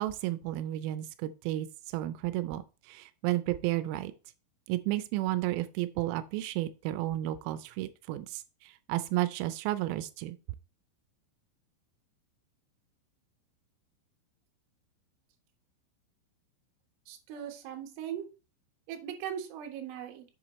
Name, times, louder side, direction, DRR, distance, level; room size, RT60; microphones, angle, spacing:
voice 1, 0.0-1.7 1.9-4.1 4.7-10.4, right 15 dB, 90° right, 3.3 m, -32 dB
voice 2, 17.1-18.3 18.9-20.3, right 9 dB, 75° right, 3.5 m, -39 dB
7.8 x 7.3 x 3.0 m
omnidirectional pair, 6.0 m